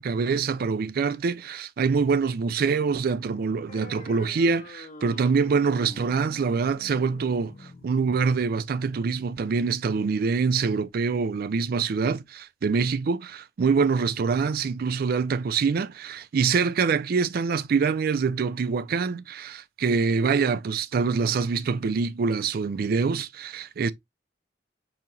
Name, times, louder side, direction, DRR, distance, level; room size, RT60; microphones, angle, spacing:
voice 1, 0.0-23.9, right 5 dB, 55° right, 0.4 m, -25 dB
sound 1, 3.7-10.7, left 3 dB, 45° left, 0.5 m, -47 dB
5.6 x 2.8 x 2.4 m
head